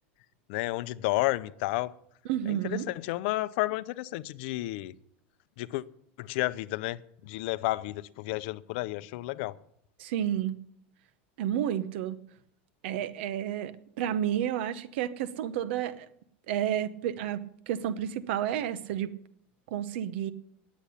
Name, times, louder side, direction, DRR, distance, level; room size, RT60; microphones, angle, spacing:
voice 1, 0.5-1.9 2.5-4.9 5.6-5.8 6.2-9.6, left 19 dB, 65° left, 0.6 m, -31 dB
voice 2, 2.3-2.9 10.0-10.6 11.4-12.2 12.8-16.1 16.5-19.1 19.7-20.3, right 10 dB, 70° right, 0.9 m, -31 dB
10.5 x 8.3 x 10.0 m
supercardioid pair, 140°, 6 cm